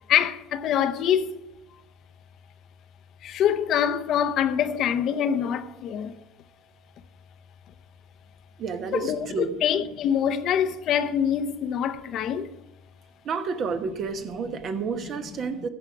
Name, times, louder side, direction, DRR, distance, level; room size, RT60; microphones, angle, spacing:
voice 1, 0.1-1.5 3.2-6.2 8.9-12.5, left 9 dB, 50° left, 0.7 m, -25 dB
voice 2, 8.6-9.5 13.2-15.7, right 5 dB, 45° right, 1.0 m, -30 dB
14.5 x 4.9 x 5.8 m
hypercardioid pair, 75°, 0 cm